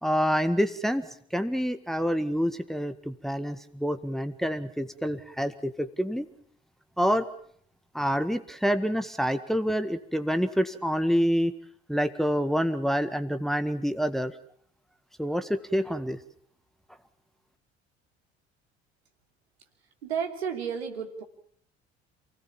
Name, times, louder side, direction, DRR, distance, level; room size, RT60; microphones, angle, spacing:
voice 1, 0.0-1.1 1.3-6.3 7.0-7.3 7.9-11.5 11.9-14.3 15.2-16.2, equal, ahead, 10 dB, 1.8 m, -27 dB
voice 2, 20.0-21.2, right 7 dB, 75° right, 5 dB, 3.2 m, -32 dB
28.5 x 19.0 x 7.3 m, 0.63 s
figure-of-eight pair, 60°, 32 cm